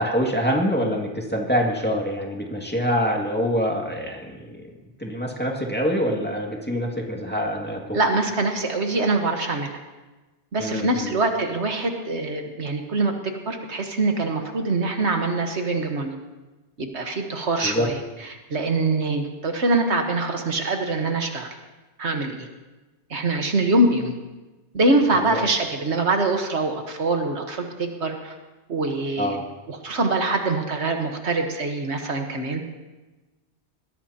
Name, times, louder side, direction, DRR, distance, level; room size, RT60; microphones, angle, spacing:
voice 1, 0.0-4.6 5.0-8.0 10.6-11.1 17.6-17.9 25.2-25.4 29.2-29.4, equal, 10° left, -1 dB, 2.1 m, -25 dB
voice 2, 7.9-9.7 10.5-16.1 16.8-21.5 22.0-22.5 23.1-24.2 24.7-28.3 28.7-29.4 29.7-32.6, right 2 dB, 70° right, 4 dB, 1.6 m, -24 dB
21.5 x 16.0 x 2.9 m, 1.2 s
omnidirectional pair, 1.2 m